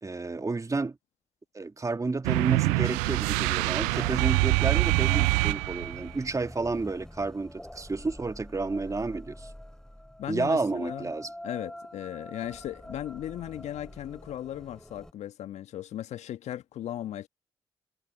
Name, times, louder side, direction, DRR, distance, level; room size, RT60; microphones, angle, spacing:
voice 1, 0.0-1.0 1.5-9.5 10.3-11.3, right 3 dB, 25° right, 2.4 m, -31 dB
sound 1, 2.2-6.1, right 30 dB, 80° right, 0.4 m, -25 dB
sound 2, 2.7-15.1, left 1 dB, 5° left, 3.6 m, -46 dB
voice 2, 10.2-11.1 11.4-17.3, left 12 dB, 65° left, 1.6 m, -37 dB
hypercardioid pair, 45°, 12 cm